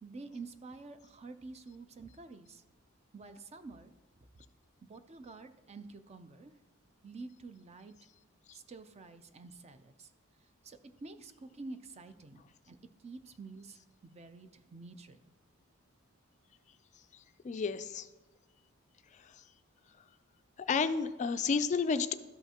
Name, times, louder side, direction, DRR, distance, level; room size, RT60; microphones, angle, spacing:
voice 1, 0.0-2.6 3.1-3.9 4.9-6.5 7.0-7.9 8.5-10.1 10.6-12.8 13.0-15.3, right 3 dB, 30° right, 11 dB, 0.4 m, -49 dB
voice 2, 17.4-18.1 20.7-22.1, left 5 dB, 35° left, 11 dB, 0.3 m, -31 dB
13.0 x 5.7 x 2.8 m, 1.2 s
head